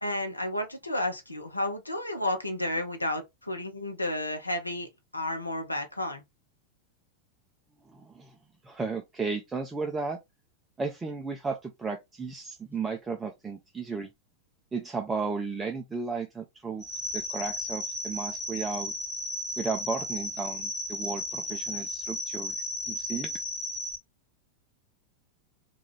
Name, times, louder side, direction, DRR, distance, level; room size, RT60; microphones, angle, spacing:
voice 1, 0.0-6.2, left 1 dB, 85° left, 0.7 m, -32 dB
voice 2, 7.9-8.3 8.6-10.2 10.8-14.1 14.7-16.8 17.1-18.9 19.6-22.5 22.9-23.3, right 4 dB, 15° right, 0.4 m, -34 dB
sound 1, 16.8-23.9, left 1 dB, 25° left, 1.2 m, -34 dB
2.3 x 2.3 x 3.1 m
figure-of-eight pair, 90°, 0 cm